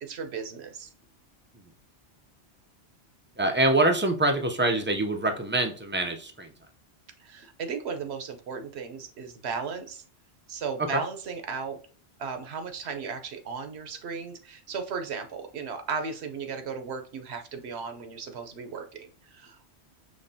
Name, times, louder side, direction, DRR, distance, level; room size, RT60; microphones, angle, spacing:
voice 1, 0.0-0.9 7.2-10.0 10.5-11.8 12.2-19.7, right 5 dB, 70° right, 7 dB, 1.0 m, -36 dB
voice 2, 3.4-6.5, right 2 dB, 15° right, 5 dB, 0.4 m, -25 dB
5.3 x 3.2 x 2.7 m, 0.40 s
omnidirectional pair, 1.2 m